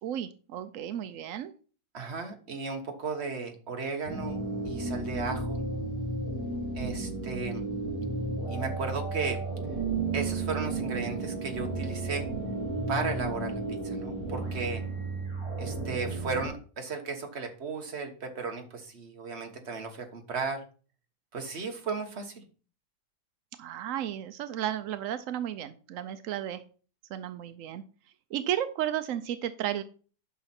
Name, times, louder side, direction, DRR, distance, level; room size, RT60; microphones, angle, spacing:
voice 1, 0.0-1.5 23.6-26.6 27.1-27.8 28.3-29.8, right 11 dB, 75° right, 11 dB, 0.7 m, -33 dB
voice 2, 1.9-5.6 6.7-7.6 8.5-9.4 10.1-12.3 12.9-14.8 15.6-20.6 21.3-22.4, right 4 dB, 40° right, 4 dB, 1.5 m, -35 dB
sound 1, 4.0-16.5, right 3 dB, 20° right, 3.4 m, -33 dB
9.6 x 6.0 x 4.3 m, 0.39 s
omnidirectional pair, 2.0 m